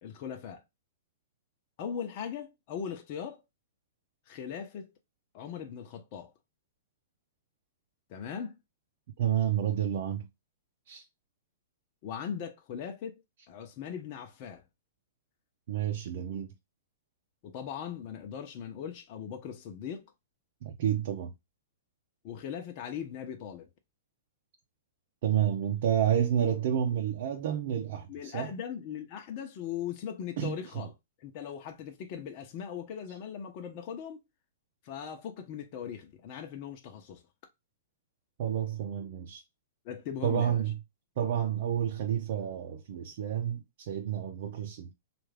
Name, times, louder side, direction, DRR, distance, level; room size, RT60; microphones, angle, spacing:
voice 1, 0.0-0.6 1.8-3.4 4.3-4.9 5.3-6.3 8.1-8.6 12.0-13.2 13.5-14.6 17.4-20.1 22.2-23.7 28.1-30.9 31.2-34.2 34.8-37.2 39.8-40.6, left 8 dB, 45° left, 0.9 m, -39 dB
voice 2, 9.2-10.3 10.9-11.0 15.7-16.5 20.6-21.3 25.2-28.5 30.4-30.8 38.4-39.4 40.2-40.8 41.2-44.9, right 9 dB, 60° right, 0.6 m, -30 dB
3.3 x 2.6 x 3.3 m
hypercardioid pair, 130°, 0 cm